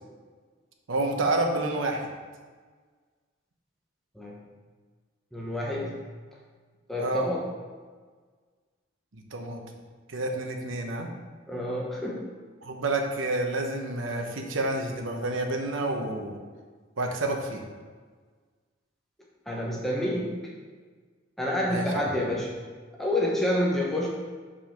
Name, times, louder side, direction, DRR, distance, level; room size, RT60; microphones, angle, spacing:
voice 1, 0.9-2.1 7.0-7.3 9.1-9.6 10.1-11.1 12.6-16.4 17.0-17.6 21.7-21.9 22.1-22.2, right 2 dB, 85° right, 3 dB, 1.0 m, -29 dB
voice 2, 5.3-6.0 6.9-7.4 11.5-12.3 19.5-20.5 21.4-22.6 23.0-24.1, left 1 dB, ahead, -4 dB, 0.9 m, -28 dB
5.6 x 5.3 x 5.8 m, 1.5 s
head